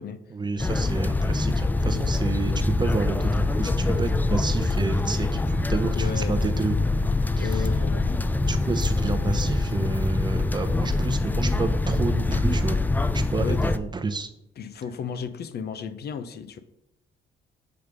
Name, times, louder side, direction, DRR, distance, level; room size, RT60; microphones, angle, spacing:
voice 1, 0.3-6.8 7.4-7.7 8.5-12.8 13.1-14.3, right 4 dB, 20° right, 8 dB, 0.8 m, -30 dB
sound 1, 0.6-13.8, left 2 dB, 10° left, 0.3 m, -24 dB
voice 2, 6.0-6.4 7.4-8.1 13.4-13.6 14.6-16.6, left 6 dB, 55° left, 11 dB, 0.6 m, -33 dB
7.0 x 3.2 x 5.1 m, 0.81 s
cardioid pair, 90°, 20 cm